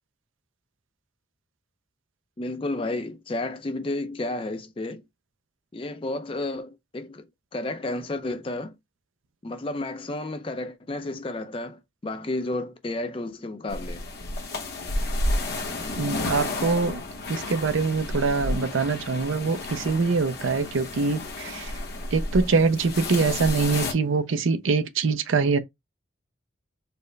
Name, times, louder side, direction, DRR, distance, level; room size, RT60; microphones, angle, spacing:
voice 1, 2.4-5.0 5.7-7.3 7.5-8.8 9.4-14.0, left 2 dB, 25° left, 0.4 m, -32 dB
sound 1, 13.7-23.9, left 2 dB, 50° left, 0.8 m, -31 dB
voice 2, 16.0-17.0 17.3-21.7 22.1-25.6, right 4 dB, 80° right, 0.5 m, -24 dB
4.3 x 2.1 x 3.2 m
head